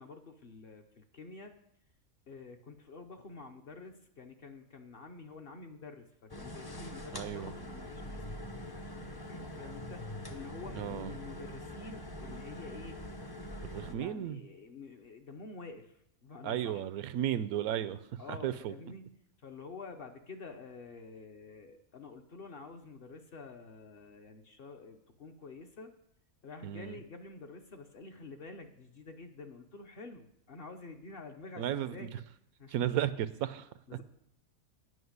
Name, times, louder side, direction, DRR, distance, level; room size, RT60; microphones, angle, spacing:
voice 1, 0.0-1.5 2.3-6.1 6.3-8.2 9.3-13.0 13.9-15.9 16.2-16.8 18.2-19.1 19.4-25.9 26.4-32.2 32.6-32.7 33.9-34.0, left 4 dB, 50° left, 5 dB, 0.8 m, -48 dB
sound 1, 6.3-13.9, left 1 dB, 30° left, 0.4 m, -43 dB
voice 2, 7.1-7.5 10.7-11.2 13.6-14.4 16.4-18.0 18.3-18.7 26.6-27.0 31.6-32.1 32.7-33.7, right 11 dB, 90° right, 14 dB, 1.1 m, -34 dB
9.4 x 5.7 x 8.0 m, 0.76 s
omnidirectional pair, 1.5 m